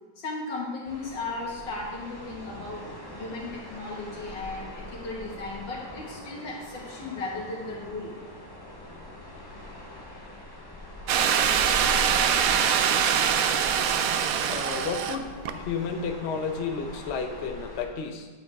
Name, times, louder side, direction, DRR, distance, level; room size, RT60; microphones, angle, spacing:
voice 1, 0.2-2.8 3.1-8.1, left 3 dB, 80° left, -3 dB, 2.4 m, -36 dB
sound 1, 0.8-17.8, left 1 dB, 25° left, 0.5 m, -42 dB
sound 2, 11.1-15.2 15.4-15.5, right 8 dB, 75° right, 0.8 m, -23 dB
voice 2, 14.4-18.3, left 5 dB, 55° left, 4 dB, 0.7 m, -32 dB
8.4 x 7.6 x 3.4 m, 1.3 s
omnidirectional pair, 2.0 m